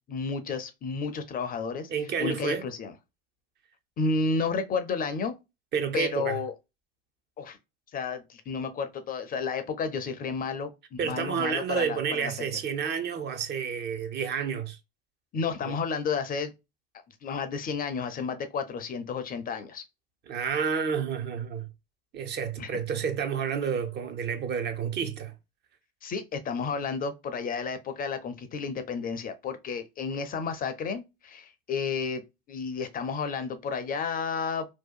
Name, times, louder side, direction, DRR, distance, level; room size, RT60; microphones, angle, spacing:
voice 1, 0.1-1.9 2.2-2.9 4.0-5.4 5.9-6.5 7.4-7.6 7.9-12.5 15.3-16.5 17.2-19.8 22.6-22.7 26.0-32.2 32.5-34.7, left 5 dB, 30° left, 0.5 m, -31 dB
voice 2, 1.9-2.7 5.7-6.4 11.0-14.8 15.6-15.7 20.3-21.7 22.1-25.3, right 6 dB, 35° right, 0.6 m, -30 dB
2.7 x 2.2 x 2.3 m
hypercardioid pair, 80°, 29 cm